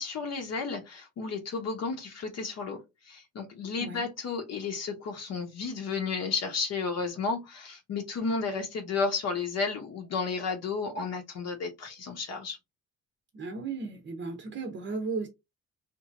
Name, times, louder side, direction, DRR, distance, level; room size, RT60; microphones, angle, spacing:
voice 1, 0.0-12.6, left 4 dB, 60° left, 0.7 m, -32 dB
voice 2, 13.3-15.3, right 4 dB, 40° right, 0.7 m, -35 dB
2.9 x 2.6 x 2.4 m
cardioid pair, 90°, 30 cm